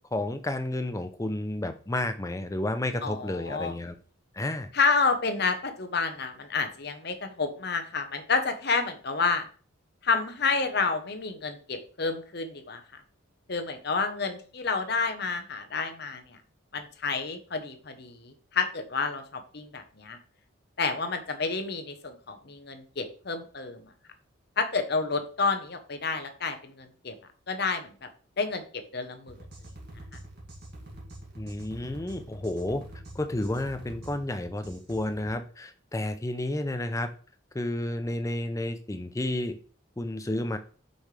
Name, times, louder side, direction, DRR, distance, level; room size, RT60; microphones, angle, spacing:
voice 1, 0.1-4.0 4.3-4.7 31.4-32.9 33.1-37.1 37.5-39.6 40.0-40.6, left 1 dB, 15° left, 9 dB, 0.5 m, -31 dB
voice 2, 3.0-3.7 4.7-9.4 10.0-12.8 13.5-16.4 16.7-20.2 20.8-23.8 24.6-27.1 27.5-27.9 28.4-28.6 28.9-29.4, left 4 dB, 50° left, 7 dB, 0.9 m, -29 dB
sound 1, 29.3-35.4, right 1 dB, 50° right, 2.2 m, -45 dB
6.6 x 5.5 x 3.3 m, 0.40 s
head